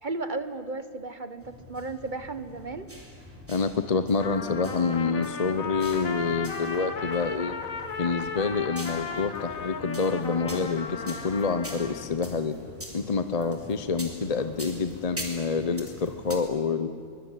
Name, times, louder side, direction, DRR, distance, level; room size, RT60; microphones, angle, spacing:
voice 1, 0.0-2.9 13.4-13.6, right 3 dB, 35° right, 11 dB, 1.1 m, -35 dB
sound 1, 1.4-16.4, equal, 10° right, 3.1 m, -44 dB
voice 2, 3.5-7.5 8.0-12.5 12.9-16.9, left 4 dB, 35° left, 10 dB, 0.7 m, -27 dB
Trumpet, 4.2-12.1, left 5 dB, 65° left, 1.9 m, -36 dB
23.0 x 21.0 x 9.8 m, 2.3 s
omnidirectional pair, 1.6 m